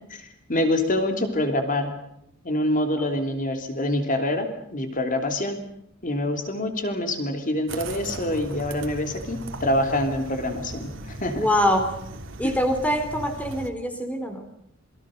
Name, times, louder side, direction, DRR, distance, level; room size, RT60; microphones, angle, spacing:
voice 1, 0.1-1.9 2.4-5.6 6.0-11.5 12.4-12.5, left 1 dB, 40° left, 6 dB, 3.5 m, -26 dB
sound 1, 7.7-13.7, right 1 dB, 65° right, 2.9 m, -38 dB
voice 2, 11.3-11.9 12.4-14.4, equal, 5° left, 6 dB, 3.6 m, -24 dB
28.0 x 23.0 x 6.6 m, 0.76 s
head